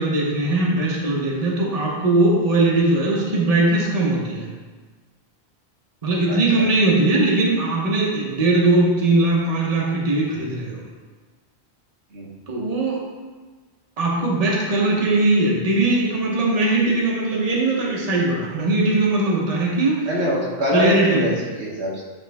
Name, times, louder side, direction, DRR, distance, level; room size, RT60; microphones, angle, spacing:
voice 1, 0.0-4.5 6.0-10.8 12.5-13.0 14.0-20.1 20.7-21.3, right 2 dB, 35° right, -3 dB, 1.1 m, -20 dB
voice 2, 6.3-6.7 12.1-12.3 20.1-21.3 21.6-22.0, equal, 75° right, -3 dB, 1.4 m, -24 dB
8.7 x 3.6 x 3.5 m, 1.4 s
omnidirectional pair, 1.1 m